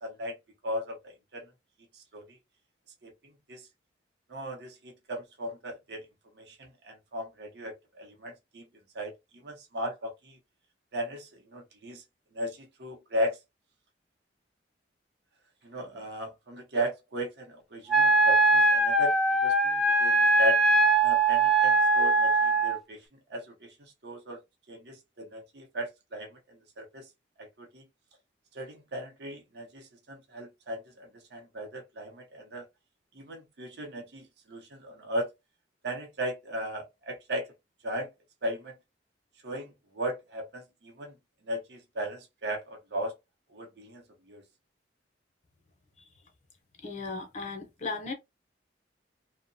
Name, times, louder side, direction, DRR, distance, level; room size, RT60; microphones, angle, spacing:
voice 1, 0.0-0.4 0.6-1.5 1.9-2.4 3.0-3.7 4.3-6.1 6.4-8.7 8.9-10.4 10.9-12.0 12.3-13.4 15.6-19.2 19.4-20.6 21.0-23.0 23.3-24.4 24.7-27.1 27.4-27.9 28.5-32.7 33.1-35.3 35.8-37.5 37.8-38.1 38.4-38.8 39.4-41.1 41.4-43.1 43.5-44.4, equal, 60° right, 0.7 m, -36 dB
Wind instrument woodwind instrument, 17.9-22.8, right 2 dB, ahead, 0.3 m, -22 dB
voice 2, 46.8-48.1, left 3 dB, 40° left, 0.6 m, -36 dB
2.7 x 2.1 x 2.6 m
head